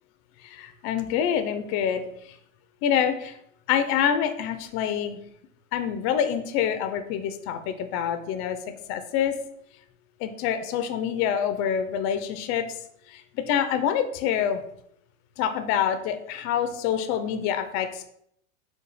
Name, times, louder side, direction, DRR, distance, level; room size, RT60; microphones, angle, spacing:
voice 1, 0.4-2.0 2.8-3.3 3.7-5.2 5.7-8.6 8.9-9.3 10.2-12.7 13.1-14.6 15.4-18.1, left 9 dB, 35° left, 8 dB, 0.4 m, -26 dB
4.8 x 2.3 x 4.8 m, 0.72 s
supercardioid pair, 135°, 41 cm